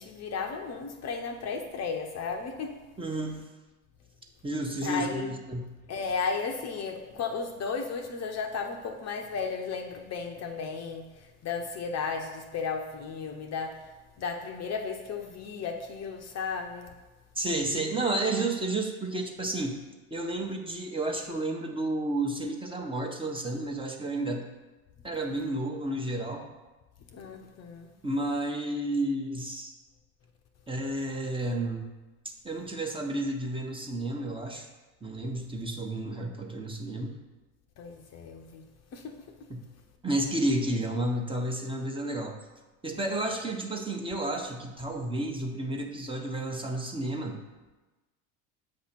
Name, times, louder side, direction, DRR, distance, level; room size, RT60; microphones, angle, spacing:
voice 1, 0.0-2.7 4.8-5.3 5.9-13.8 14.2-16.9 27.1-27.9 37.8-38.6 38.9-39.3, left 5 dB, 40° left, 4 dB, 0.7 m, -34 dB
voice 2, 3.0-3.4 4.4-5.7 17.3-19.8 20.1-24.5 25.0-26.4 28.0-29.7 30.7-31.9 32.4-34.7 35.0-37.1 39.5-39.6 40.0-42.4 42.8-47.4, right 1 dB, 10° right, 1 dB, 1.0 m, -31 dB
7.8 x 2.9 x 5.8 m, 1.2 s
hypercardioid pair, 80°, 42 cm